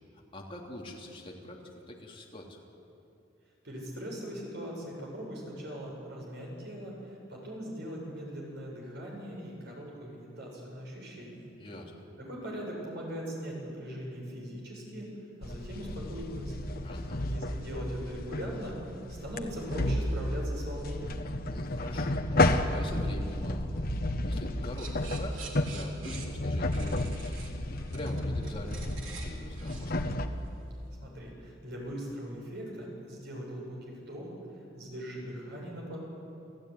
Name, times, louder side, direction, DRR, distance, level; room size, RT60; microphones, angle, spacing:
voice 1, 0.1-2.6 11.6-11.9 16.8-17.2 21.5-23.7 24.2-27.4 27.7-30.0, left 1 dB, 30° left, -1 dB, 3.4 m, -44 dB
voice 2, 3.6-11.5 12.3-15.1 15.4-16.7 17.3-21.2 31.0-34.3 34.7-36.0, equal, 60° right, -2 dB, 7.7 m, -40 dB
sound 1, 15.4-30.3, left 1 dB, 50° left, 1.3 m, -32 dB
sound 2, 24.8-30.9, right 4 dB, 85° right, 3.5 m, -47 dB
29.5 x 16.5 x 9.7 m, 2.8 s
head